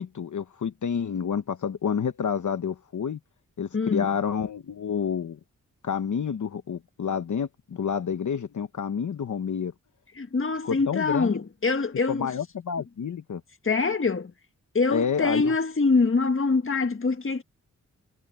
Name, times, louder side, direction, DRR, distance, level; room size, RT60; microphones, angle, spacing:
voice 1, 0.0-3.2 3.6-5.4 5.8-9.7 10.6-11.3 12.1-13.4 14.9-15.5, left 7 dB, 70° left, 1.1 m, -29 dB
voice 2, 3.7-4.1 10.1-12.3 13.6-14.3 14.7-17.4, left 4 dB, 40° left, 1.7 m, -24 dB
cardioid pair, 55°, 31 cm